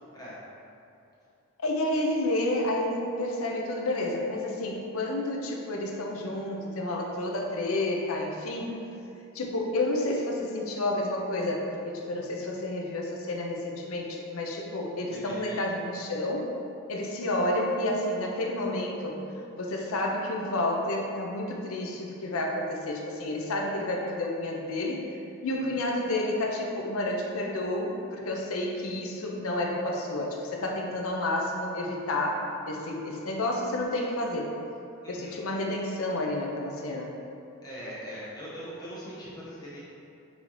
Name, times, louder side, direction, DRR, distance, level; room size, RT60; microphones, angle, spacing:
voice 1, 1.6-8.8 9.3-16.5 16.9-19.2 19.6-25.0 25.4-34.5 35.1-37.1, left 1 dB, 70° left, 0 dB, 0.6 m, -30 dB
voice 2, 15.1-15.6 25.5-25.8 35.0-35.4 37.6-39.8, equal, 15° left, -8 dB, 0.7 m, -41 dB
5.4 x 2.7 x 3.0 m, 2.6 s
head